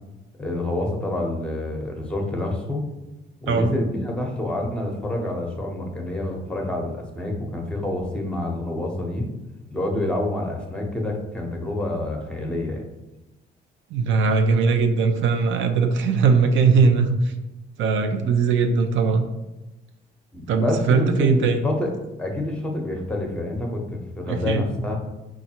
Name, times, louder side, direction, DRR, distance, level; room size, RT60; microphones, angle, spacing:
voice 1, 0.4-2.8 3.4-9.3 9.7-12.8 20.3-21.9 22.2-25.0, left 1 dB, 5° left, 1 dB, 0.8 m, -27 dB
voice 2, 13.9-17.3 17.8-19.3 20.5-21.6 24.3-24.7, right 5 dB, 70° right, 7 dB, 0.5 m, -20 dB
5.0 x 2.4 x 2.8 m, 1.0 s
cardioid pair, 90°, 20 cm